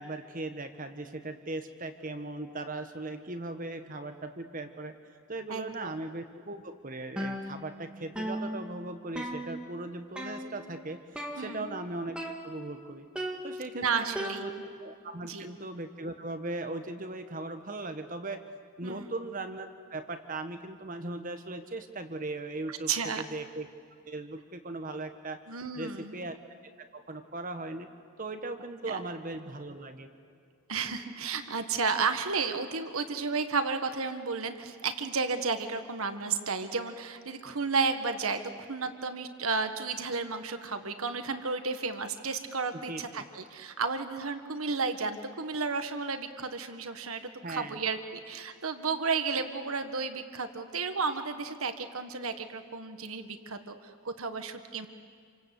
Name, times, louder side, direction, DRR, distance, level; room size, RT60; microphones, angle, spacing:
voice 1, 0.0-4.9 5.3-12.2 12.4-13.1 13.4-18.4 18.8-22.9 23.2-23.7 24.1-25.4 25.7-26.4 26.8-27.9 28.2-30.1 42.9-43.3 47.4-47.8, right 2 dB, 40° right, 7 dB, 1.3 m, -38 dB
voice 2, 5.5-5.9 11.4-11.7 13.7-14.4 15.2-15.5 18.8-19.1 22.9-23.2 25.5-26.1 28.9-29.0 30.7-54.9, right 4 dB, 75° right, 8 dB, 1.5 m, -32 dB
sound 1, 7.2-7.9 8.2-9.8 10.2-10.7 11.2-11.8 12.2-12.8 13.2-14.9, equal, 5° right, 2.0 m, -38 dB
28.0 x 25.5 x 8.3 m, 2.3 s
head